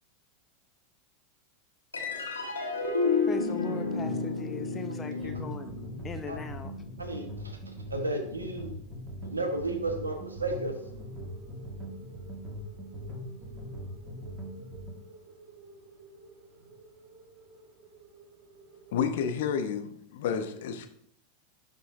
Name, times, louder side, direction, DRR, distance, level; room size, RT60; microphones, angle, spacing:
sound 1, 1.9-8.6, left 4 dB, 90° left, 1.2 m, -32 dB
voice 1, 3.3-5.7 6.0-6.8, left 5 dB, 25° left, 8 dB, 0.5 m, -39 dB
Frozen Plumbum Rain, 5.2-14.9, equal, 15° right, 1.7 m, -41 dB
voice 2, 7.0-8.8 9.2-10.7, right 2 dB, 90° right, 4 dB, 1.1 m, -33 dB
sound 2, 10.1-19.7, right 3 dB, 45° right, 1.3 m, -52 dB
voice 3, 18.9-20.9, left 7 dB, 65° left, 8 dB, 0.7 m, -30 dB
11.5 x 3.9 x 2.6 m, 0.66 s
figure-of-eight pair, 90°, 0 cm